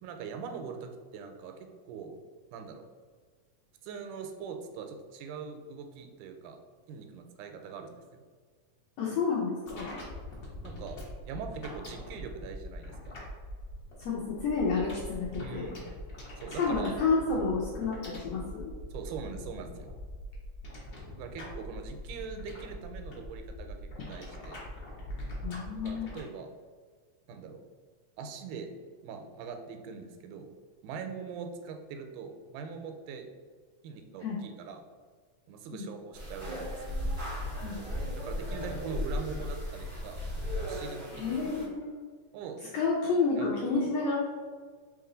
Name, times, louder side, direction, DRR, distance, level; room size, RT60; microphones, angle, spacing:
voice 1, 0.0-2.1 2.5-2.8 3.8-6.6 6.9-8.2 10.6-11.0 11.3-13.2 15.4-15.9 16.4-17.0 17.4-17.6 18.9-19.9 21.2-24.6 25.8-26.5 27.3-27.6 28.2-28.7 29.0-30.5 30.8-33.3 33.8-34.8 35.5-37.0 38.2-40.2 40.6-41.4 42.3-42.6 43.4-43.9, right 6 dB, 85° right, 5 dB, 2.1 m, -42 dB
voice 2, 9.0-10.0 14.0-15.7 16.6-18.7 25.4-26.1 34.2-34.4 35.7-35.9 37.6-37.8 41.1-41.9 42.7-44.2, left 4 dB, 80° left, -4 dB, 1.4 m, -30 dB
sound 1, 9.7-26.2, left 1 dB, 60° left, 1.0 m, -44 dB
sound 2, 36.1-41.7, left 1 dB, 55° right, 0.5 m, -36 dB
4.6 x 2.9 x 3.8 m, 1.5 s
omnidirectional pair, 3.6 m